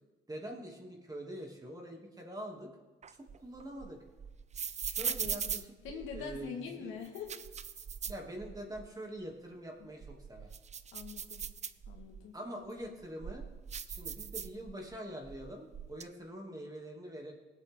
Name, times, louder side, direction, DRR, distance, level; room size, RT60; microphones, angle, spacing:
voice 1, 0.3-2.7 3.1-4.0 4.8-6.9 8.0-10.5 12.3-13.4 13.9-17.3, right 1 dB, 20° right, 0 dB, 2.8 m, -45 dB
sound 1, 3.0-6.5 7.0-8.9 9.2-9.3 9.8-12.2 12.8-15.0 15.2-16.0, right 7 dB, 35° right, 0.6 m, -40 dB
voice 2, 5.2-5.6 5.8-7.4 10.9-11.5 11.9-12.4, left 6 dB, 90° left, 2 dB, 2.0 m, -44 dB
19.0 x 8.2 x 3.8 m, 1.2 s
cardioid pair, 90°, 20 cm